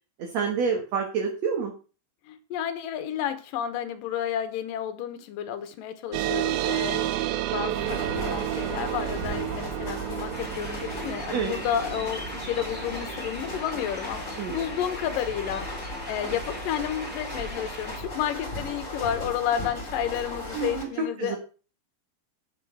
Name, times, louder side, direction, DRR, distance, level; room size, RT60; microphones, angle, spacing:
voice 1, 0.2-1.7 11.3-11.5 14.4-14.7 20.5-20.9 21.2-21.4, right 6 dB, 55° right, 2 dB, 2.5 m, -28 dB
voice 2, 2.3-7.1 7.5-21.4, left 9 dB, 70° left, 10 dB, 2.8 m, -31 dB
sound 1, 6.1-17.1, right 13 dB, 80° right, 2.6 m, -32 dB
sound 2, 7.7-20.8, left 1 dB, 20° left, 3.8 m, -37 dB
sound 3, 10.3-18.0, equal, 5° right, 2.1 m, -41 dB
9.1 x 7.7 x 6.2 m, 0.35 s
omnidirectional pair, 4.3 m